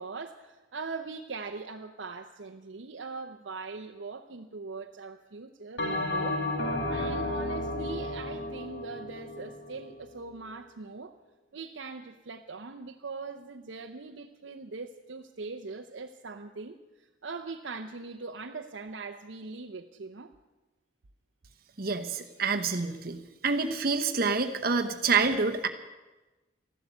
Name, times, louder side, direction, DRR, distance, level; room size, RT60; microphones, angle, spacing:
voice 1, 0.0-6.4 6.9-11.2 11.5-20.3, right 4 dB, 75° right, 3 dB, 0.7 m, -41 dB
Bell, 5.8-10.4, left 1 dB, 60° left, 2.2 m, -33 dB
voice 2, 21.8-25.7, right 4 dB, 50° right, 6 dB, 0.9 m, -27 dB
14.5 x 12.5 x 8.2 m, 1.1 s
head